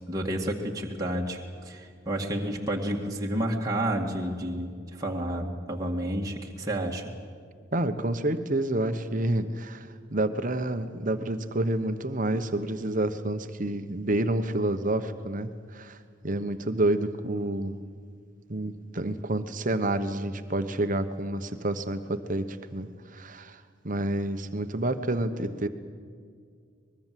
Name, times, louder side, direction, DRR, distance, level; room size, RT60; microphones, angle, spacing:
voice 1, 0.1-7.1, right 1 dB, 15° right, -2 dB, 2.0 m, -30 dB
voice 2, 7.7-16.0 16.2-17.8 18.5-25.7, right 1 dB, 40° right, 9 dB, 1.2 m, -29 dB
24.5 x 21.5 x 7.6 m, 2.1 s
head